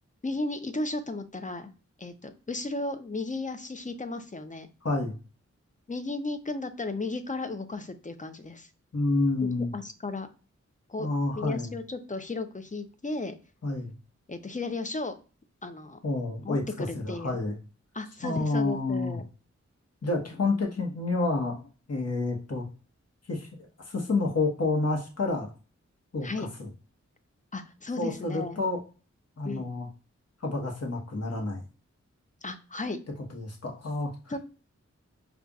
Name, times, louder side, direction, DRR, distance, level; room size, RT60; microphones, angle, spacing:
voice 1, 0.2-1.7 2.0-4.7 5.9-8.7 9.4-10.3 10.9-11.1 11.3-13.4 14.3-15.2 15.6-16.0 16.4-17.4 17.9-19.3 26.2-26.5 27.5-28.6 29.4-29.7 32.4-33.0 34.3-34.4, left 2 dB, 25° left, 9 dB, 0.5 m, -34 dB
voice 2, 8.9-9.7 11.0-11.7 13.6-13.9 16.0-17.6 18.2-19.2 20.0-21.6 21.9-22.7 23.3-23.5 23.9-25.5 26.1-26.7 28.0-28.8 29.4-29.9 30.4-31.6 33.3-34.1, left 3 dB, 60° left, 1 dB, 1.1 m, -29 dB
5.3 x 2.4 x 2.3 m, 0.35 s
wide cardioid pair, 55°, 29 cm